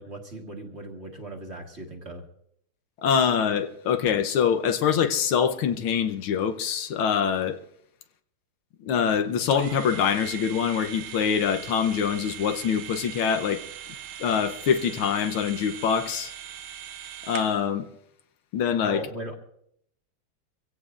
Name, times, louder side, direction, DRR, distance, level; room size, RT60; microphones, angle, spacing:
voice 1, 0.0-2.2 18.8-19.3, right 1 dB, 35° right, 1.7 m, -38 dB
voice 2, 3.0-7.6 8.8-13.6 14.2-16.3 17.3-17.9 18.5-19.0, left 7 dB, 75° left, 1.7 m, -24 dB
sound 1, 9.5-17.7, right 10 dB, 80° right, 1.7 m, -40 dB
24.0 x 16.5 x 2.5 m
omnidirectional pair, 2.4 m